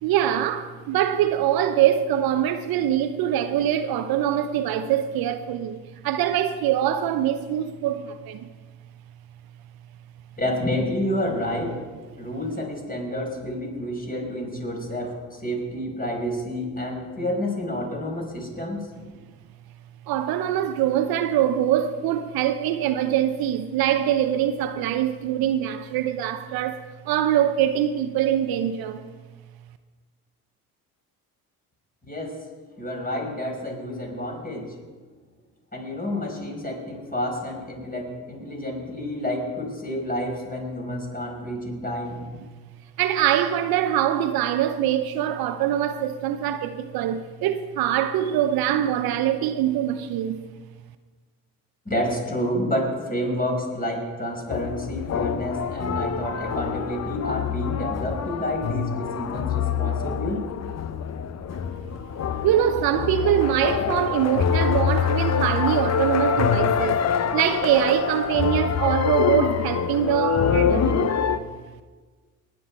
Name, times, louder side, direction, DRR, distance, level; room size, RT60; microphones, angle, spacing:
voice 1, 0.0-8.5 20.1-29.0 43.0-50.4 62.4-67.0 67.3-71.1, right 11 dB, 60° right, 0.8 m, -23 dB
voice 2, 10.4-11.8 12.2-18.9 32.1-32.4 32.8-34.7 35.7-42.2 51.9-60.5, left 1 dB, 20° left, 5.3 m, -29 dB
sound 1, 54.5-71.4, left 7 dB, 40° left, 0.9 m, -25 dB
19.5 x 9.4 x 4.7 m
hypercardioid pair, 60°, 40 cm